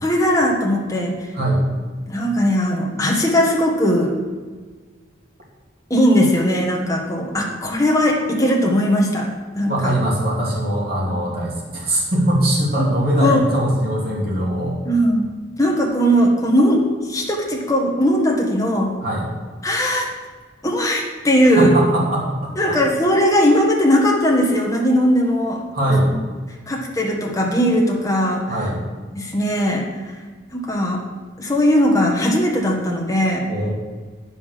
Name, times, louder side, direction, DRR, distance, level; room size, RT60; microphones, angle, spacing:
voice 1, 0.0-1.3 2.1-4.1 5.9-9.3 9.5-9.9 11.1-11.2 12.8-12.9 13.2-13.4 14.8-15.3 15.6-18.9 19.6-20.1 20.6-21.8 22.6-25.6 26.1-26.2 26.7-28.6 29.1-30.2 30.5-31.0 31.4-33.5, equal, 15° left, -1 dB, 1.4 m, -18 dB
voice 2, 9.7-14.8 19.0-19.3 21.6-22.8 25.7-26.1 28.5-28.8 33.5-33.7, right 1 dB, 50° right, -3 dB, 2.7 m, -21 dB
9.3 x 5.6 x 6.7 m, 1.4 s
head